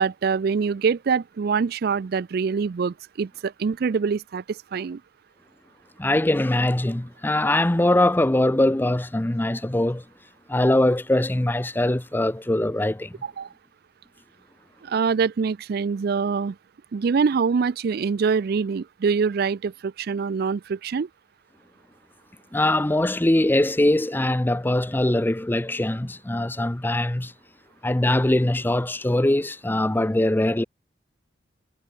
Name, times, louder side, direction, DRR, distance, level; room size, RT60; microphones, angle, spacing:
voice 1, 0.0-5.0 13.2-13.5 14.8-16.6 16.9-21.1, right 5 dB, 55° right, 0.4 m, -24 dB
voice 2, 6.0-10.0 10.5-13.1 22.5-27.3 27.8-30.6, left 1 dB, 10° left, 0.6 m, -22 dB
head